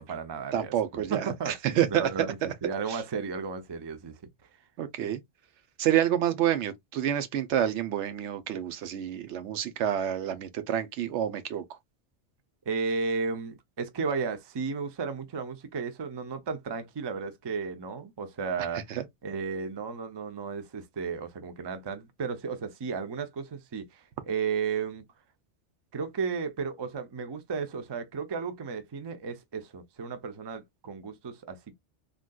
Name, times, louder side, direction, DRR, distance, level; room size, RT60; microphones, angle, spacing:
voice 1, 0.0-1.5 1.9-4.2 12.7-18.8 19.2-25.0 25.9-31.7, right 5 dB, 35° right, 0.4 m, -34 dB
voice 2, 0.5-2.5 2.9-3.0 4.8-5.2 5.8-11.8 18.7-19.1, right 10 dB, 85° right, 1.0 m, -28 dB
3.7 x 2.4 x 2.2 m
omnidirectional pair, 1.1 m